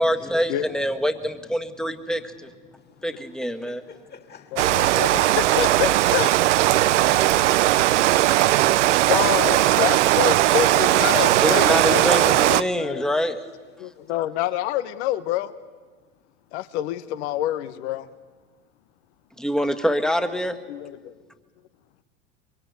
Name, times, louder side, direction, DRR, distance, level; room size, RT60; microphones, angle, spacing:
voice 1, 0.0-2.5 3.0-3.8 11.4-13.4 19.4-20.6, equal, ahead, 1.6 m, -25 dB
voice 2, 3.4-5.9 6.3-6.6 13.8-14.1, left 6 dB, 30° left, 2.7 m, -46 dB
voice 3, 4.5-6.3 9.0-13.1 13.8-15.5 16.5-18.1 20.7-21.1, left 13 dB, 70° left, 1.2 m, -27 dB
Rain, 4.6-12.6, right 15 dB, 80° right, 0.7 m, -18 dB
24.5 x 22.5 x 8.3 m
hypercardioid pair, 90°, 35 cm